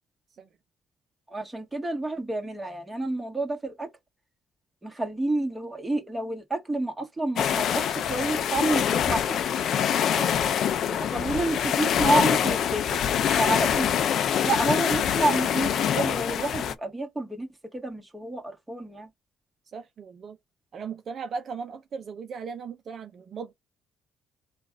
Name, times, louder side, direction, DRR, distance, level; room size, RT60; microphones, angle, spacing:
voice 1, 1.3-3.9 4.8-9.4 11.1-13.0 13.4-13.9 14.4-17.5 17.7-19.1, right 2 dB, 15° right, 1.7 m, -29 dB
sound 1, 7.4-16.7, left 9 dB, 65° left, 0.5 m, -25 dB
voice 2, 10.1-10.6 10.9-11.5 19.7-20.4 20.7-23.5, right 5 dB, 55° right, 0.7 m, -38 dB
3.8 x 2.5 x 4.6 m
supercardioid pair, 75°, 0 cm